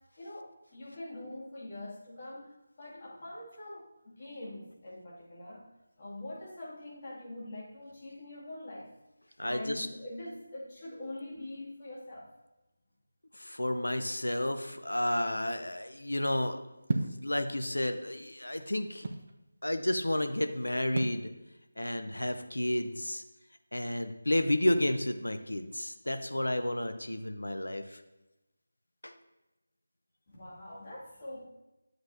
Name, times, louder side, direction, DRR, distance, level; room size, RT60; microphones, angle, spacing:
voice 1, 0.2-2.5 2.8-5.6 6.0-8.9 9.4-12.3 30.3-31.4, left 1 dB, 30° left, -6 dB, 2.3 m, -44 dB
voice 2, 9.4-9.9 13.3-16.6 17.0-19.0 19.6-21.3 21.8-23.2 23.7-28.0 29.0-29.1, left 1 dB, 70° left, 8 dB, 0.7 m, -31 dB
sound 1, 16.9-17.2 18.1-19.3 21.0-21.2, right 2 dB, 45° right, 0.7 m, -33 dB
10.0 x 7.8 x 2.7 m, 0.98 s
figure-of-eight pair, 160°, 0 cm